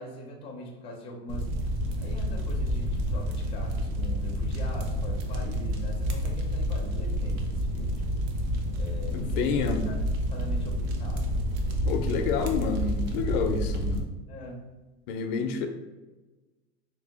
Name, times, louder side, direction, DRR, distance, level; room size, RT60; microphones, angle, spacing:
voice 1, 0.0-1.5 2.0-8.2 8.7-11.4 14.3-14.6, left 1 dB, 20° left, 0 dB, 0.5 m, -42 dB
sound 1, 1.3-14.0, equal, 55° right, 0.6 m, -29 dB
voice 2, 9.1-9.8 11.9-14.1 15.1-15.7, left 5 dB, 70° left, 6 dB, 0.5 m, -29 dB
3.1 x 2.8 x 3.4 m, 1.2 s
supercardioid pair, 160°, 30 cm